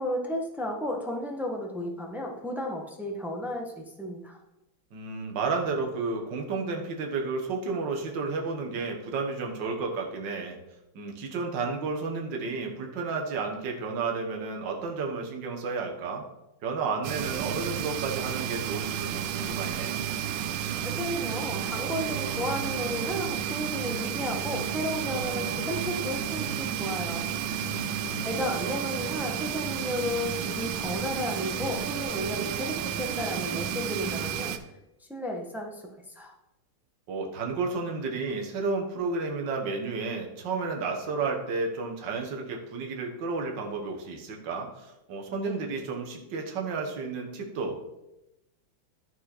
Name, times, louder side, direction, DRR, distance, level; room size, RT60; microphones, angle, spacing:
voice 1, 0.0-4.4 20.8-27.3 28.2-34.5 35.1-35.8 36.1-36.3 45.4-45.6, left 1 dB, ahead, 1 dB, 0.4 m, -33 dB
voice 2, 4.9-10.6 11.0-16.2 16.6-20.0 27.6-28.4 37.1-47.8, right 4 dB, 60° right, 2 dB, 1.9 m, -32 dB
sound 1, 17.0-34.6, right 9 dB, 80° right, 1.5 m, -32 dB
12.5 x 4.6 x 4.4 m, 0.92 s
omnidirectional pair, 2.3 m